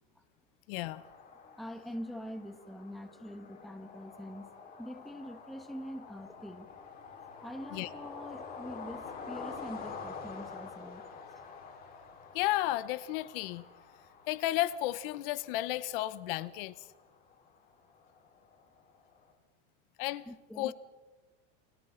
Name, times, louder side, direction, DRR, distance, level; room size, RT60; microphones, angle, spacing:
voice 1, 0.7-1.0 7.7-7.9 12.3-13.6 14.3-16.7 20.0-20.3 20.6-20.7, left 15 dB, 55° left, 0.9 m, -33 dB
sound 1, 0.7-19.3, left 5 dB, 25° left, 4.5 m, -48 dB
voice 2, 1.4-4.5 4.8-6.7 7.4-11.4 20.3-20.7, equal, ahead, 1.1 m, -44 dB
30.0 x 25.5 x 3.9 m
supercardioid pair, 175°, 35 cm